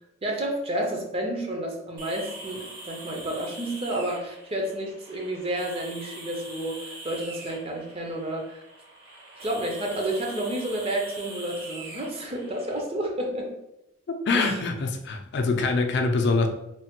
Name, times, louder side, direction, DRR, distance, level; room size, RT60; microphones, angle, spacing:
voice 1, 0.2-8.6 9.4-13.5 14.3-14.6, right 1 dB, 30° right, 1 dB, 0.5 m, -30 dB
sound 1, 2.0-12.8, right 2 dB, 60° right, 0.8 m, -43 dB
voice 2, 14.1-16.5, left 3 dB, 60° left, 4 dB, 0.4 m, -24 dB
3.2 x 2.1 x 2.8 m, 0.85 s
head